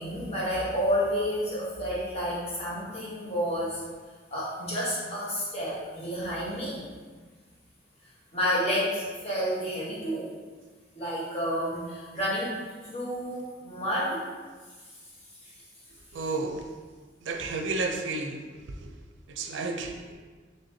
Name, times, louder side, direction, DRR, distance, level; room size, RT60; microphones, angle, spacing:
voice 1, 0.0-3.8 4.3-6.8 8.3-10.3 10.9-14.2, equal, 35° left, -8 dB, 1.2 m, -30 dB
voice 2, 16.1-16.7 17.2-18.9 19.3-20.1, right 3 dB, 90° right, 3 dB, 0.4 m, -32 dB
4.1 x 3.3 x 2.7 m, 1.4 s
head